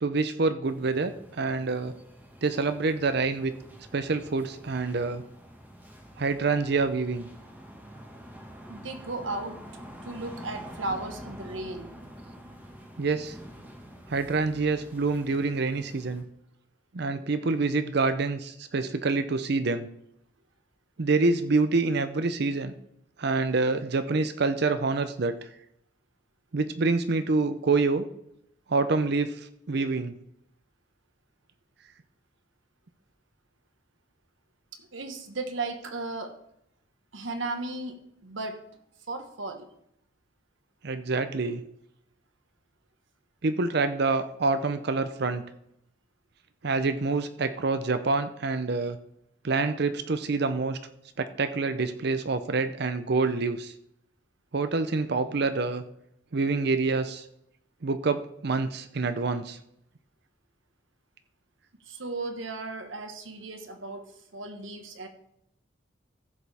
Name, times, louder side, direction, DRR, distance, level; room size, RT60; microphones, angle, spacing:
voice 1, 0.0-1.9 2.4-3.5 3.9-5.2 6.2-7.3 13.0-13.4 14.1-16.2 16.9-19.9 21.0-22.7 23.2-25.4 26.5-28.0 28.7-29.4 29.7-30.1 40.8-41.6 43.4-45.4 46.6-49.0 49.4-50.8 51.2-53.7 54.5-55.8 56.3-57.2 57.8-59.6, right 3 dB, 55° right, 10 dB, 0.6 m, -26 dB
sound 1, 0.6-16.2, equal, 10° right, 1.4 m, -47 dB
voice 2, 8.7-9.6 10.0-11.9 34.7-36.4 37.1-38.6 39.1-39.7 61.9-65.1, right 2 dB, 75° right, 6 dB, 1.4 m, -35 dB
15.0 x 7.2 x 3.4 m, 0.77 s
head